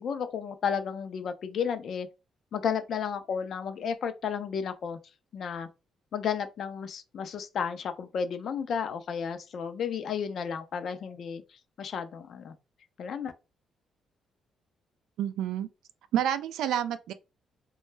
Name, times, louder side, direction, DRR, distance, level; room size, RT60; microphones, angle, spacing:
voice 1, 0.0-2.1 2.5-5.0 5.3-5.7 6.1-12.5 13.0-13.3, left 7 dB, 60° left, 0.5 m, -33 dB
voice 2, 15.2-15.7 16.1-17.1, right 10 dB, 85° right, 0.3 m, -29 dB
2.2 x 2.1 x 3.2 m
cardioid pair, 90°, 0 cm